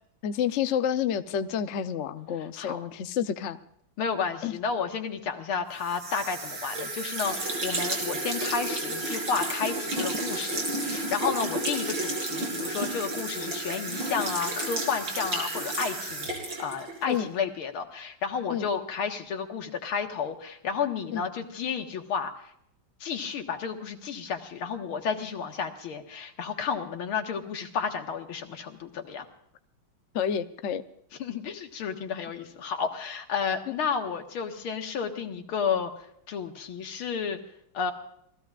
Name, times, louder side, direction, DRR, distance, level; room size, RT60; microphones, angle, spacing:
voice 1, 0.2-3.6 4.4-4.5 17.1-17.3 18.5-18.7 21.1-21.3 30.1-30.8, left 9 dB, 65° left, 9 dB, 0.7 m, -29 dB
voice 2, 4.0-16.3 16.6-22.3 23.0-29.3 31.2-35.9 36.3-37.4 37.7-37.9, left 6 dB, 85° left, 4 dB, 2.4 m, -31 dB
sound 1, 5.8-17.2, right 2 dB, 70° right, 4.5 m, -32 dB
27.5 x 18.5 x 2.5 m, 0.71 s
omnidirectional pair, 2.3 m